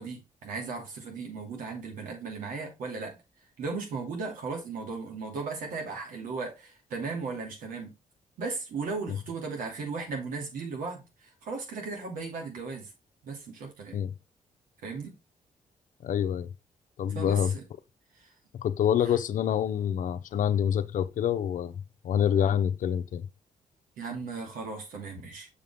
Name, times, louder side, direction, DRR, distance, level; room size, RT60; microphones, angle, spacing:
voice 1, 0.0-3.2 3.6-7.9 8.4-12.9 13.2-14.0 14.8-15.1 17.1-17.6 18.1-18.3 19.0-19.1 24.0-25.5, right 4 dB, 85° right, 2.8 m, -36 dB
voice 2, 16.0-16.5 17.0-17.5 18.5-23.3, left 9 dB, 75° left, 0.7 m, -27 dB
6.8 x 5.5 x 3.5 m
cardioid pair, 85°, 14 cm